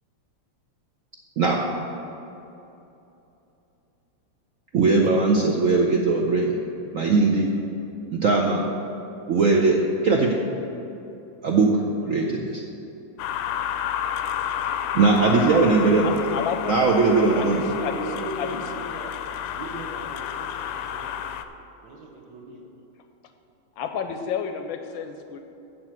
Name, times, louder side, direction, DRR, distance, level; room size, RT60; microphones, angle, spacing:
voice 1, 4.7-6.6 6.9-7.6 8.1-8.7 9.3-10.3 11.4-11.7 12.0-12.6 14.9-16.4 16.7-17.7, right 3 dB, 85° right, 0 dB, 0.7 m, -20 dB
sound 1, 13.2-21.4, left 9 dB, 90° left, 1.5 m, -30 dB
voice 2, 16.0-16.7 17.3-18.1 18.4-18.6 23.8-25.4, left 7 dB, 75° left, 6 dB, 1.2 m, -31 dB
voice 3, 17.4-19.1 19.5-21.1 21.8-22.6, right 2 dB, 55° right, 0 dB, 1.6 m, -37 dB
8.4 x 6.3 x 7.8 m, 2.9 s
omnidirectional pair, 2.4 m